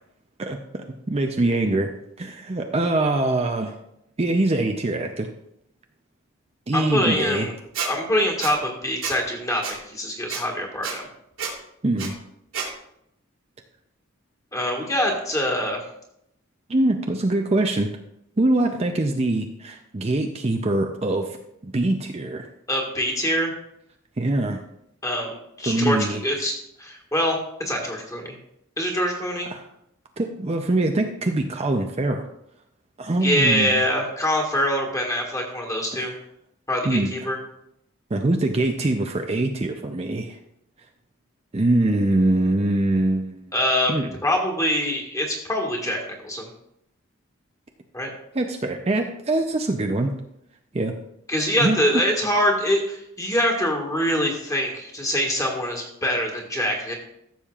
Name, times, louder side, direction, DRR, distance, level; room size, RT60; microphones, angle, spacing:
voice 1, 0.4-1.9 2.2-3.8 4.2-5.3 6.7-7.5 11.8-12.1 16.7-17.9 18.4-21.4 21.6-22.5 24.2-24.6 25.7-26.2 29.5-29.6 30.2-32.3 33.0-33.8 35.9-36.1 36.8-37.1 38.1-40.4 41.5-43.5 43.9-44.1 48.3-50.2 50.7-50.9 51.6-51.8, right 2 dB, 30° right, 4 dB, 0.5 m, -23 dB
voice 2, 6.7-7.5 7.8-11.1 14.5-15.8 22.7-23.5 25.0-26.5 26.8-27.4 27.6-28.3 28.8-29.5 33.2-36.1 36.7-37.4 43.5-43.9 44.2-46.5 47.9-48.1 51.3-56.9, equal, 15° left, 1 dB, 1.7 m, -24 dB
Squeak, 7.7-7.9 8.4-8.5 9.0-9.2 9.6-9.7 10.3-10.4 10.8-10.9 11.4-11.5 12.0-12.1 12.5-12.7, right 6 dB, 80° right, 2.8 m, -29 dB
14.5 x 7.2 x 2.4 m, 0.78 s
head